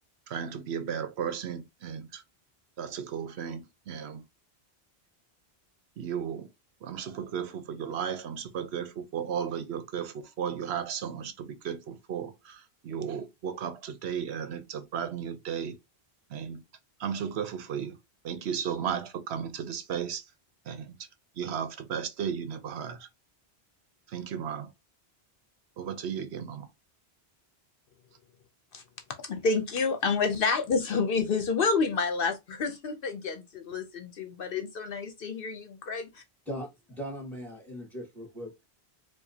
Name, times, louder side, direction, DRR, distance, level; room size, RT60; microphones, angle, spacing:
voice 1, 0.3-2.2 2.8-4.2 6.0-6.5 6.8-15.7 16.3-16.6 17.0-18.0 18.2-20.2 20.7-20.9 21.4-23.1 24.1-24.7 25.8-26.7, right 8 dB, 80° right, 0.9 m, -35 dB
voice 2, 29.2-36.2, left 4 dB, 65° left, 0.8 m, -29 dB
voice 3, 36.5-38.6, equal, ahead, 2.2 m, -39 dB
4.8 x 2.3 x 2.7 m
omnidirectional pair, 1.1 m